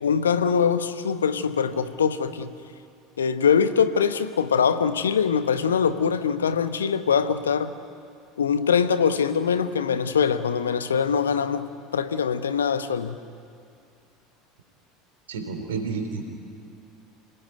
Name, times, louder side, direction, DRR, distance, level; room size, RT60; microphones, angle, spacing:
voice 1, 0.0-2.5 3.2-7.7 8.4-13.2, left 6 dB, 75° left, 11 dB, 1.1 m, -23 dB
voice 2, 15.3-16.3, right 4 dB, 70° right, 5 dB, 3.3 m, -30 dB
27.0 x 18.0 x 9.3 m, 2.3 s
figure-of-eight pair, 70°, 0 cm